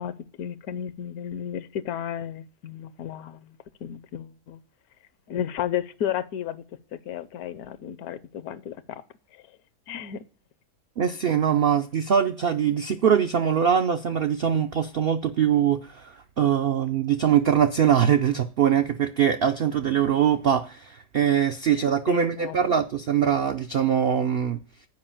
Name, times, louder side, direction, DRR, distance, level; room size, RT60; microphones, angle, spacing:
voice 1, 0.0-3.6 3.8-4.6 5.3-6.6 7.1-9.0 9.3-9.4 9.9-10.3 22.1-22.8, left 10 dB, 75° left, 1.1 m, -33 dB
voice 2, 11.0-24.6, right 8 dB, 75° right, 0.5 m, -22 dB
7.7 x 5.1 x 7.3 m
omnidirectional pair, 1.7 m